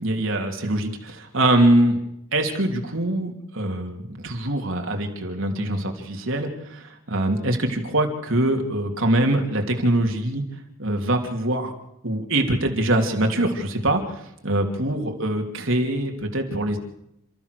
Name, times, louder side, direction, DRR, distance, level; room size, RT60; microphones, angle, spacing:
voice 1, 0.0-2.0 2.3-10.4 10.8-11.7 12.0-16.8, right 1 dB, 70° right, 3 dB, 3.1 m, -23 dB
29.5 x 14.0 x 6.8 m, 0.81 s
head